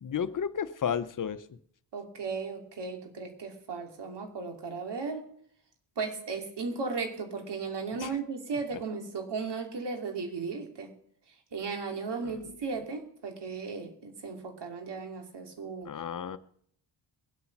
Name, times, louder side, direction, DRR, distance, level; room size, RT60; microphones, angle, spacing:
voice 1, 0.0-1.6 8.0-8.1 12.2-12.3 15.8-16.4, left 8 dB, 45° left, 14 dB, 0.9 m, -32 dB
voice 2, 1.9-5.3 6.0-10.9 11.5-15.9, right 4 dB, 65° right, 4 dB, 2.8 m, -36 dB
21.0 x 8.3 x 5.9 m, 0.66 s
cardioid pair, 75°, 45 cm